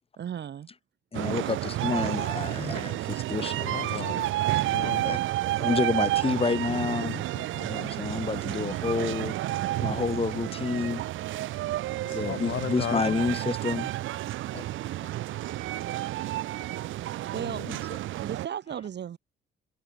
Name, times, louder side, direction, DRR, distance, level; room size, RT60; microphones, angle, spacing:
voice 1, 0.2-0.7 17.0-17.6 18.2-19.2, right 9 dB, 60° right, 4.3 m, -36 dB
voice 2, 1.1-3.7 4.8-5.2 5.5-7.2 7.7-9.4 9.8-11.0 12.1-13.9 14.5-14.7 15.9-16.0 16.2-16.4 17.7-17.8, left 4 dB, 30° left, 3.5 m, -29 dB
sound 1, 1.1-18.5, right 15 dB, 80° right, 0.9 m, -30 dB
voice 3, 3.7-4.3 4.6-5.2 7.0-7.7 12.0-13.2 14.3-14.4 14.9-15.0 17.3-17.7, left 11 dB, 70° left, 6.1 m, -36 dB
cardioid pair, 90°, 20 cm